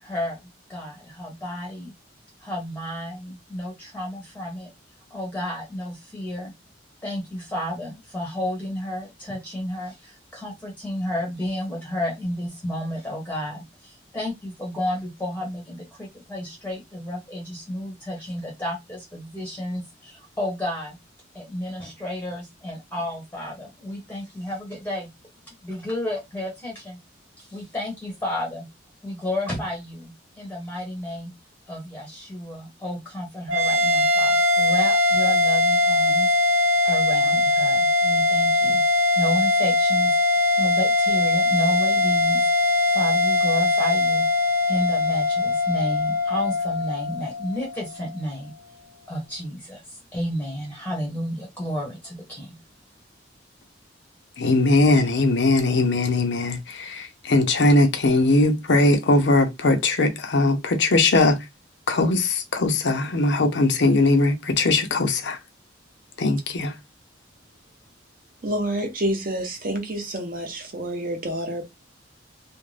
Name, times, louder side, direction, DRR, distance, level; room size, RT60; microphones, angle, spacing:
voice 1, 0.0-0.4 0.7-1.9 2.4-4.7 5.1-6.5 7.0-21.0 21.3-25.1 25.5-27.0 27.4-28.7 29.0-31.3 31.7-36.3 36.8-38.8 39.2-42.5 42.9-44.3 44.7-48.5 49.1-52.5, left 1 dB, 10° left, 0.7 m, -31 dB
sound 1, 33.5-48.1, left 2 dB, 80° right, 0.9 m, -21 dB
voice 2, 54.4-61.4 61.9-65.4 66.2-66.7, left 2 dB, 70° left, 0.6 m, -20 dB
voice 3, 68.4-71.7, right 1 dB, 45° right, 0.8 m, -28 dB
2.5 x 2.1 x 3.2 m
head